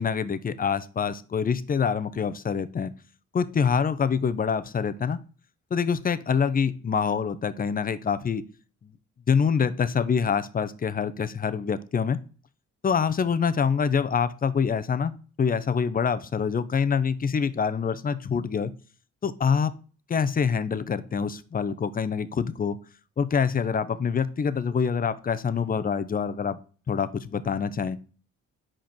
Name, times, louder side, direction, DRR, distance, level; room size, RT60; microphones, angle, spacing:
voice 1, 0.0-2.9 3.3-5.2 5.7-8.4 8.8-8.9 9.3-12.2 12.8-15.1 15.4-18.7 19.2-19.7 20.1-22.8 23.2-26.6 26.9-28.0, left 6 dB, 30° left, 14 dB, 0.6 m, -25 dB
5.2 x 4.4 x 5.9 m, 0.38 s
cardioid pair, 90°, 30 cm